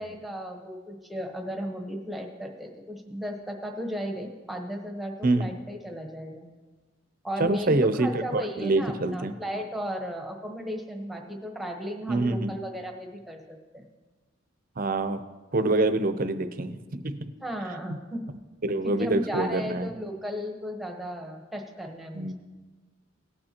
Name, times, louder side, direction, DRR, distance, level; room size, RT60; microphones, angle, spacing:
voice 1, 0.0-6.5 7.2-13.8 17.4-18.3 18.8-22.3, equal, ahead, 2 dB, 1.1 m, -35 dB
voice 2, 5.2-5.6 7.4-9.3 12.1-12.5 14.8-15.2 15.5-17.3 17.9-18.0 18.3-19.9 22.1-22.3, right 2 dB, 45° right, 10 dB, 0.6 m, -26 dB
18.5 x 8.8 x 2.9 m, 1.3 s
head